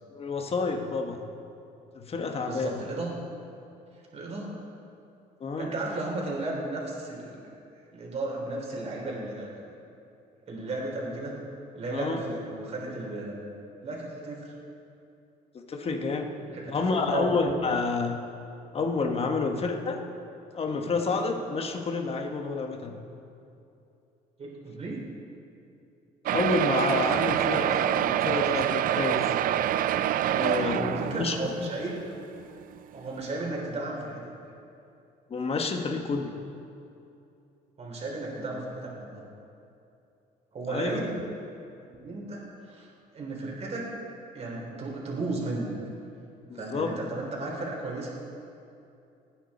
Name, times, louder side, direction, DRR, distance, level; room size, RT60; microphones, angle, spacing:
voice 1, 0.1-1.2 1.9-2.8 5.4-5.7 11.9-12.2 15.7-16.3 16.7-18.2 18.7-20.0 20.5-23.0 26.3-29.3 30.3-31.4 31.6-31.7 35.3-36.3 40.7-41.1 46.5-47.0, left 4 dB, 35° left, 4 dB, 1.4 m, -29 dB
voice 2, 2.4-3.1 4.1-4.5 5.6-7.4 7.9-9.7 10.5-11.4 11.8-14.5 16.4-17.3 24.4-25.1 30.8-32.0 32.9-34.2 37.8-39.2 40.5-41.2 42.0-42.9 43.1-43.9 44.3-45.7 46.5-48.1, right 2 dB, 40° right, -2 dB, 3.5 m, -34 dB
sound 1, 26.3-31.7 32.4-32.5 32.7-32.8 33.2-33.3, right 11 dB, 55° right, 0.4 m, -26 dB
19.5 x 9.4 x 4.3 m, 2.7 s
cardioid pair, 110°, 17 cm